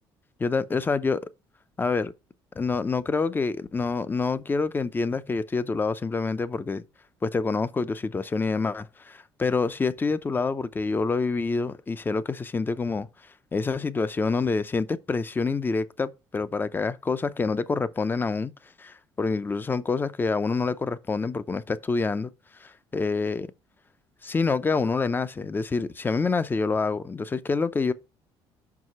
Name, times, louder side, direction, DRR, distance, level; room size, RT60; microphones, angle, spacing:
voice 1, 0.4-1.3 1.8-2.1 2.6-6.8 7.2-13.1 13.5-18.5 18.8-22.3 22.6-23.5 24.2-27.9, left 4 dB, 20° left, 0.6 m, -27 dB
5.6 x 4.8 x 5.4 m
cardioid pair, 105°, 10 cm